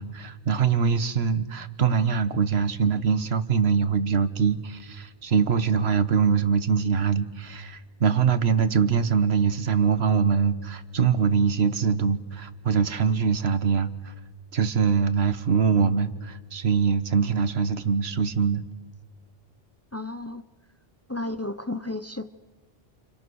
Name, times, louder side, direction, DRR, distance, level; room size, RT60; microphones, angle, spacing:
voice 1, 0.0-14.1 14.5-18.6, right 6 dB, 85° right, 12 dB, 1.5 m, -23 dB
voice 2, 19.9-20.4 21.1-22.3, left 2 dB, 15° left, 11 dB, 0.7 m, -32 dB
29.5 x 29.5 x 6.4 m, 1.3 s
omnidirectional pair, 1.0 m